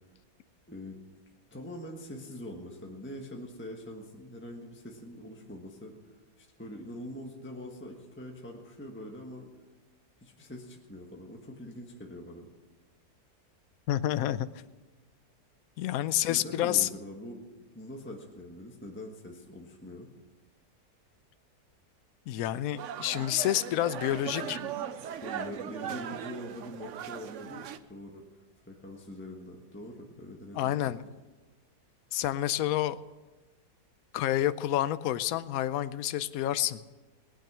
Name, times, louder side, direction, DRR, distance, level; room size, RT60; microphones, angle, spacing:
voice 1, 0.7-1.0 1.5-5.9 6.4-9.5 10.2-12.5 16.3-17.4 17.7-20.1 24.1-24.6 25.2-28.2 28.6-31.0, left 1 dB, 10° left, 0 dB, 1.3 m, -43 dB
voice 2, 13.9-14.5 15.8-16.9 22.3-24.6 30.5-31.0 32.1-33.0 34.1-36.8, left 13 dB, 70° left, 13 dB, 1.0 m, -29 dB
sound 1, 22.8-27.8, right 9 dB, 60° right, 0.9 m, -39 dB
19.5 x 9.2 x 6.1 m, 1.2 s
omnidirectional pair, 1.7 m